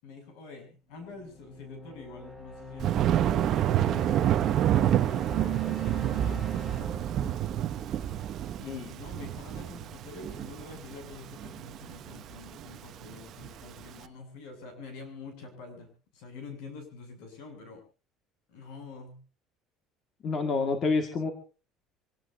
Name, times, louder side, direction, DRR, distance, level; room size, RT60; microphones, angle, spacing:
voice 1, 0.0-6.5 8.6-17.8 18.5-19.2, left 4 dB, 70° left, 6 dB, 7.7 m, -46 dB
sound 1, 0.9-8.8, left 1 dB, 15° left, 4.0 m, -46 dB
Thunder, 2.8-13.9, right 11 dB, 40° right, 1.0 m, -28 dB
Keyboard (musical), 5.3-7.3, right 25 dB, 80° right, 1.5 m, -36 dB
voice 2, 20.2-21.3, left 4 dB, 30° left, 6 dB, 2.0 m, -27 dB
25.5 x 18.0 x 2.8 m, 0.34 s
cardioid pair, 175°, 0 cm